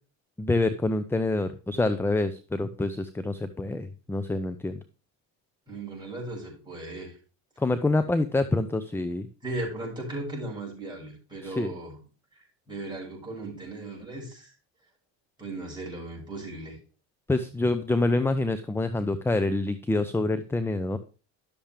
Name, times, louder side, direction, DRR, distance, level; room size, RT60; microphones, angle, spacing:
voice 1, 0.4-4.8 7.6-9.3 11.4-11.7 17.3-21.0, left 2 dB, 5° left, 11 dB, 0.5 m, -26 dB
voice 2, 5.7-7.1 9.4-12.0 12.7-14.5 15.4-16.8, right 2 dB, 10° right, -3 dB, 5.8 m, -37 dB
11.5 x 7.2 x 3.4 m, 0.36 s
supercardioid pair, 105°, 39 cm